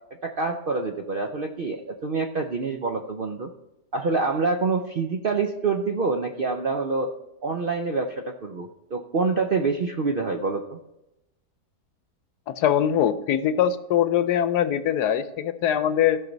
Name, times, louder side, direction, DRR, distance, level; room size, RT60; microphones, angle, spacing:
voice 1, 0.2-3.5 3.9-7.1 7.4-10.8, right 4 dB, 60° right, 4 dB, 0.5 m, -26 dB
voice 2, 12.5-16.2, left 10 dB, 80° left, 12 dB, 1.2 m, -22 dB
16.0 x 5.8 x 3.9 m, 0.94 s
omnidirectional pair, 1.7 m